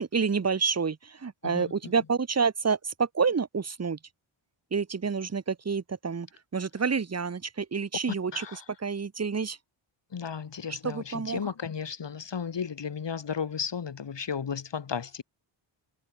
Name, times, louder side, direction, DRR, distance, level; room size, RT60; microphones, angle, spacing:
voice 1, 0.0-4.0 4.7-6.3 6.5-8.4 8.8-9.6 10.8-11.4, right 5 dB, 30° right, 1.6 m, -28 dB
voice 2, 1.4-1.9 8.3-8.7 10.1-15.2, left 6 dB, 60° left, 7.0 m, -34 dB
wide cardioid pair, 120°, 48 cm